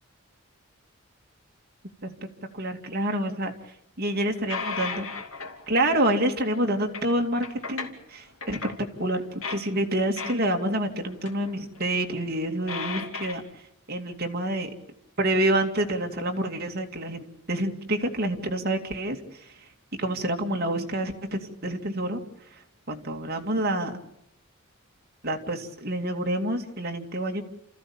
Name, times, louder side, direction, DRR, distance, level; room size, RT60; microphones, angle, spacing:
voice 1, 2.5-3.5 4.0-5.1 5.7-13.4 13.9-14.7 15.2-19.5 20.0-22.2 22.5-22.6 22.9-24.0 25.2-27.4, right 1 dB, 45° right, 3 dB, 2.5 m, -28 dB
sound 1, 4.3-5.6 6.5-7.1 7.4-8.1 8.4-8.8 9.1-9.6 10.2-10.8 11.1-11.5 11.7-12.0 12.7-13.3, left 5 dB, 75° left, 3.0 m, -35 dB
29.5 x 14.5 x 8.8 m, 0.78 s
head